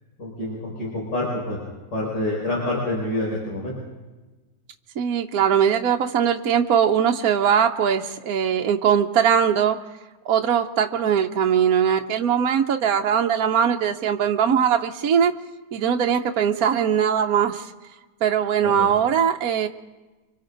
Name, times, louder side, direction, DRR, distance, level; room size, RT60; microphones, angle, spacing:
voice 1, 0.2-1.6 1.9-3.7 18.8-18.9, left 1 dB, 85° left, -5 dB, 6.1 m, -27 dB
voice 2, 5.0-9.8 10.3-15.3 15.7-17.7 18.2-19.7, right 8 dB, 60° right, 3 dB, 1.2 m, -20 dB
30.0 x 24.5 x 3.9 m, 1.2 s
omnidirectional pair, 1.9 m